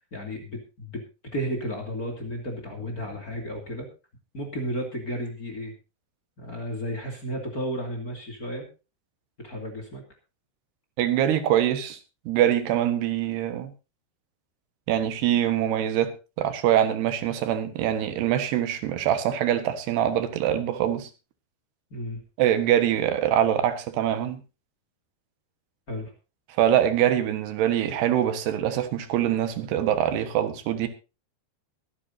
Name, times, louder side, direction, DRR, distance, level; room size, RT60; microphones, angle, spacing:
voice 1, 0.1-1.0 1.3-3.9 4.3-5.7 6.4-8.7 9.4-10.0 21.9-22.2 25.9-26.1, equal, 25° left, 2.5 m, -33 dB
voice 2, 11.0-12.0 12.3-13.7 14.9-21.1 22.4-24.4 26.6-30.9, right 11 dB, 90° right, 3.6 m, -24 dB
22.5 x 10.0 x 2.8 m
omnidirectional pair, 4.6 m